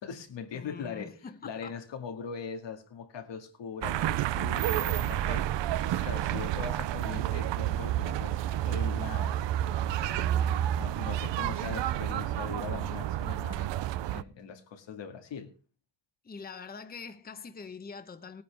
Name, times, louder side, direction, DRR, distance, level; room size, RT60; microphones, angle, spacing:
voice 1, 0.0-1.2 1.4-5.5 6.0-8.4 8.7-9.5 10.2-15.5, left 6 dB, 90° left, 2.0 m, -41 dB
voice 2, 0.5-1.7 10.1-10.9 16.2-18.4, left 5 dB, 20° left, 0.9 m, -44 dB
sound 1, 3.8-14.2, right 12 dB, 85° right, 0.6 m, -30 dB
19.0 x 9.5 x 3.4 m
wide cardioid pair, 140°, 42 cm